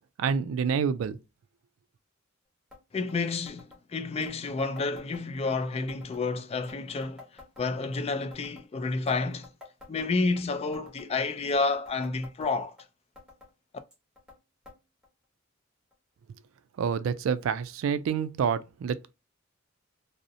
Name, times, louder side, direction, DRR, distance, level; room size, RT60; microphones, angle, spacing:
voice 1, 0.2-1.2 16.8-19.1, right 6 dB, 75° right, 0.3 m, -28 dB
sound 1, 2.7-2.8 3.1-3.2 3.5-3.8 4.2-5.6 5.9-6.3 6.6-8.0 8.3-8.7 9.1-10.4 10.7-11.1 11.5-12.8 13.2-13.5 13.9-14.4 14.7-14.8 15.0-15.1 15.9-16.0 16.8-16.9, left 3 dB, 5° right, 0.9 m, -51 dB
voice 2, 2.9-9.5 9.9-12.8, left 3 dB, 30° left, 0.3 m, -30 dB
2.5 x 2.0 x 2.6 m
head